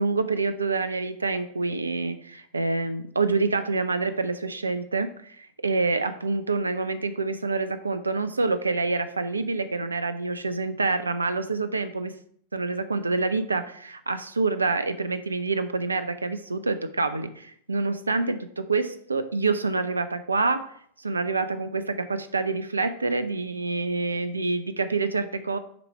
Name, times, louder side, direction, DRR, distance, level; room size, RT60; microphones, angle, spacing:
voice 1, 0.0-12.2 12.5-20.7 21.0-25.6, right 3 dB, 80° right, 11 dB, 0.4 m, -27 dB
6.7 x 3.1 x 4.5 m, 0.63 s
figure-of-eight pair, 90°, 0 cm